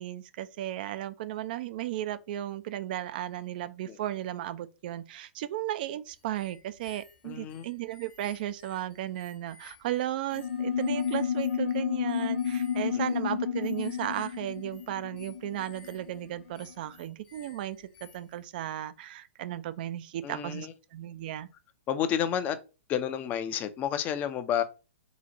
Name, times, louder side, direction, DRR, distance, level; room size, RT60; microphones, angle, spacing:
voice 1, 0.0-21.5, right 13 dB, 45° right, 0.4 m, -35 dB
sound 1, 6.1-18.5, left 5 dB, 45° left, 1.0 m, -57 dB
voice 2, 7.2-7.7 12.9-13.0 20.2-20.7 21.9-22.6 22.9-24.6, left 9 dB, 25° left, 0.5 m, -30 dB
sound 2, 10.3-16.3, left 8 dB, 80° left, 0.5 m, -31 dB
3.9 x 2.4 x 4.1 m
figure-of-eight pair, 115°, 7 cm